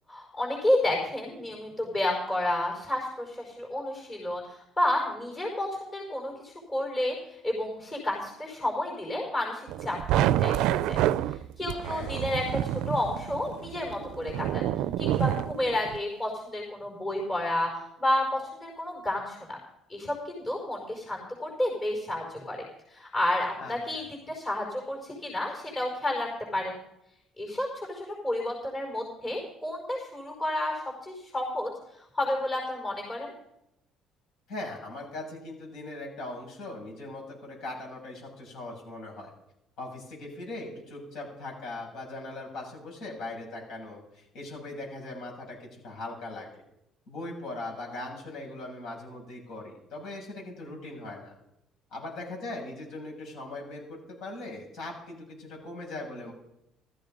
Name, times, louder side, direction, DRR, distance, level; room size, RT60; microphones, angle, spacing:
voice 1, 0.1-4.4 4.8-7.1 7.4-11.0 11.2-14.6 15.0-19.6 19.9-22.6 22.9-26.8 27.4-31.7 32.1-33.3, left 1 dB, 25° left, 0 dB, 5.0 m, -31 dB
sound 1, 9.7-16.0, right 13 dB, 80° right, 0.4 m, -28 dB
voice 2, 11.8-12.1 23.6-23.7 34.5-39.3 39.8-46.6 47.1-51.3 51.9-56.3, left 2 dB, 65° left, -2 dB, 7.5 m, -40 dB
15.0 x 14.0 x 5.3 m, 0.83 s
cardioid pair, 125°, 0 cm